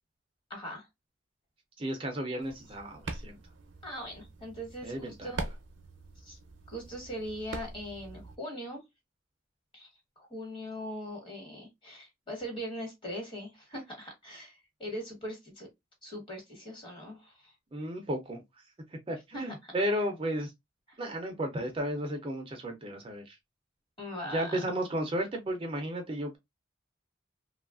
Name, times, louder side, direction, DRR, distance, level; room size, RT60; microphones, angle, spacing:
voice 1, 0.5-0.9 3.8-5.4 6.2-6.4 6.7-8.8 9.7-9.9 10.2-15.7 16.0-17.5 19.3-19.5 20.9-21.0 24.0-24.6, equal, 25° left, 1.3 m, -40 dB
voice 2, 1.8-3.4 4.8-5.3 17.7-18.4 19.1-20.5 21.0-23.4 24.3-26.4, equal, 30° right, 0.5 m, -33 dB
sound 1, 2.4-8.4, right 2 dB, 75° right, 0.6 m, -43 dB
3.0 x 2.3 x 2.3 m
head